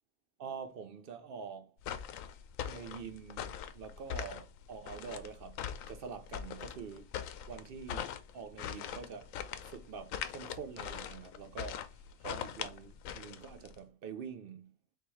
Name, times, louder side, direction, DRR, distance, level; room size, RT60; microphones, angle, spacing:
voice 1, 0.4-1.7 2.7-5.6 5.9-7.1 7.5-9.3 9.6-14.7, right 6 dB, 60° right, 0.6 m, -46 dB
sound 1, 1.8-13.8, left 9 dB, 85° left, 1.0 m, -42 dB
4.1 x 3.6 x 3.1 m
omnidirectional pair, 1.3 m